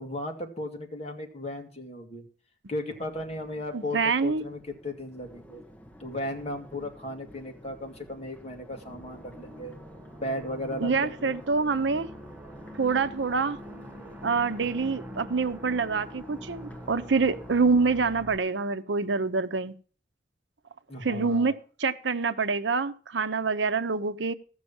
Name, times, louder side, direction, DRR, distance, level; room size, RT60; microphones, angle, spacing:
voice 1, 0.0-2.2 2.7-5.6 6.0-9.8 10.2-11.4 20.9-21.6, left 1 dB, 35° left, 2.1 m, -36 dB
Crowd, 2.9-18.0, equal, 10° left, 1.5 m, -51 dB
voice 2, 3.7-4.5 10.8-12.1 12.7-13.6 14.2-19.7 21.0-21.5 21.8-24.3, right 4 dB, 75° right, 0.7 m, -26 dB
sound 1, 8.7-18.4, equal, 10° right, 1.5 m, -44 dB
15.0 x 6.2 x 7.1 m
head